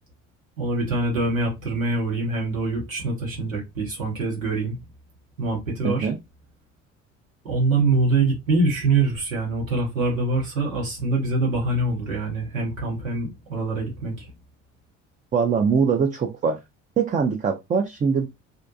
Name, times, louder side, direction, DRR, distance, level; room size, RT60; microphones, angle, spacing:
voice 1, 0.6-4.8 5.4-6.1 7.4-14.3, right 3 dB, 90° right, 1.0 m, -24 dB
voice 2, 5.8-6.2 15.3-16.6 17.0-18.3, right 6 dB, 20° right, 0.4 m, -22 dB
2.5 x 2.1 x 2.6 m
hypercardioid pair, 55°, 39 cm